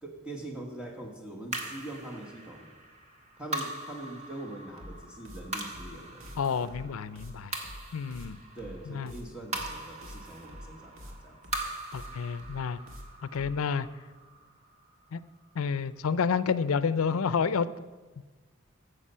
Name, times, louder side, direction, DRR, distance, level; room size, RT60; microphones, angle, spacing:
voice 1, 0.0-2.7 3.4-6.4 8.5-11.7, right 1 dB, 5° right, 0 dB, 1.4 m, -43 dB
sound 1, 1.5-16.0, right 2 dB, 35° right, 1.6 m, -42 dB
sound 2, 4.8-13.6, equal, 70° right, 1.7 m, -46 dB
voice 2, 6.3-7.5 7.9-8.4 8.9-9.1 11.9-12.8 13.3-13.9 15.1-15.2 15.6-17.7, left 6 dB, 80° left, 16 dB, 0.5 m, -29 dB
15.0 x 6.7 x 5.6 m, 1.3 s
head